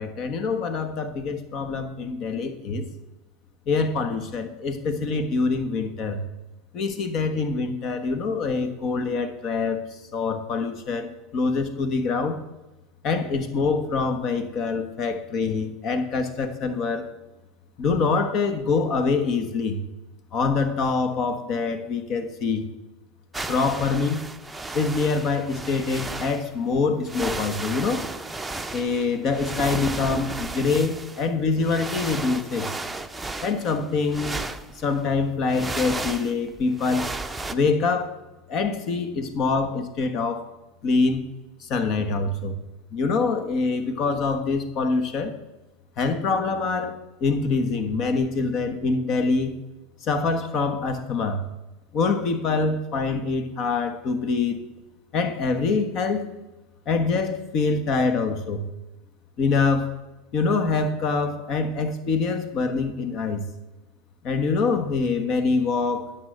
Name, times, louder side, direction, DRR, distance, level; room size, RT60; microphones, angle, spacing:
voice 1, 0.0-2.9 3.7-6.2 6.7-9.9 10.1-12.3 13.0-17.0 17.8-19.8 20.3-22.7 23.5-24.2 24.7-28.0 28.7-32.7 33.4-34.4 34.8-37.1 37.5-38.2 38.5-40.5 40.8-41.3 41.6-42.6 42.9-45.3 46.0-49.5 50.0-51.4 51.9-54.6 55.1-56.2 56.9-58.6 59.4-59.9 60.3-63.4 64.2-66.2, left 4 dB, 45° left, 9 dB, 1.3 m, -25 dB
sound 1, 23.3-26.5 27.1-35.0 35.5-37.5, right 2 dB, 10° right, 0.7 m, -34 dB
9.5 x 6.1 x 6.6 m, 1.1 s
hypercardioid pair, 85°, 0 cm